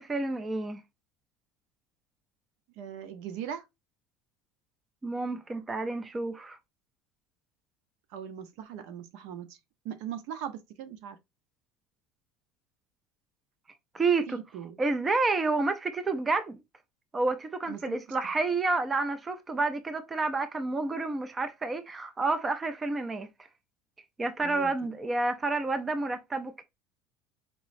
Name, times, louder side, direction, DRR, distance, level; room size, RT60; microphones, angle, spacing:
voice 1, 0.1-0.8 5.0-6.6 13.9-14.4 14.8-16.6 17.1-23.3 24.2-26.6, right 3 dB, 15° right, 0.5 m, -29 dB
voice 2, 2.8-3.6 8.1-9.6 9.8-11.2 14.3-14.8 17.7-18.0 24.4-24.9, right 9 dB, 70° right, 0.7 m, -40 dB
4.6 x 3.0 x 2.5 m
cardioid pair, 155°, 0 cm